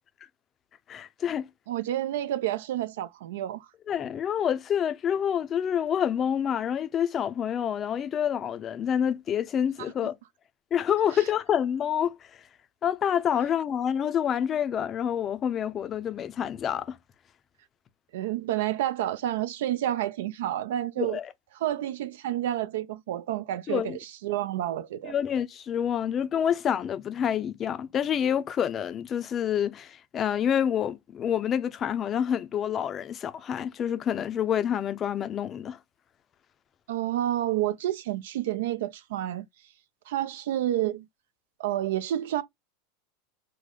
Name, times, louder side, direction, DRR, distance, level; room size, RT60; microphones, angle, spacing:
voice 1, 0.9-1.5 3.9-10.1 10.7-12.2 12.8-17.0 21.0-21.3 23.7-24.0 25.1-35.8, left 9 dB, 30° left, 0.4 m, -27 dB
voice 2, 1.7-3.7 11.1-11.2 18.1-21.2 21.5-25.1 36.9-39.5 40.1-41.0 41.6-42.4, right 13 dB, 80° right, 0.4 m, -29 dB
3.3 x 2.0 x 3.7 m
supercardioid pair, 135°, 0 cm